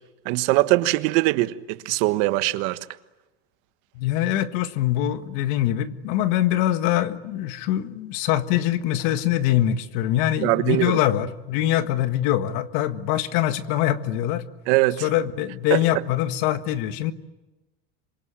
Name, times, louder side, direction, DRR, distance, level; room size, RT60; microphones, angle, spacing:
voice 1, 0.2-2.8 10.4-11.0 14.7-15.1 15.7-15.8, right 19 dB, 60° right, 1.4 m, -21 dB
voice 2, 3.9-14.4 15.0-17.1, left 12 dB, 60° left, 1.7 m, -23 dB
27.0 x 23.5 x 9.0 m
supercardioid pair, 145°, 29 cm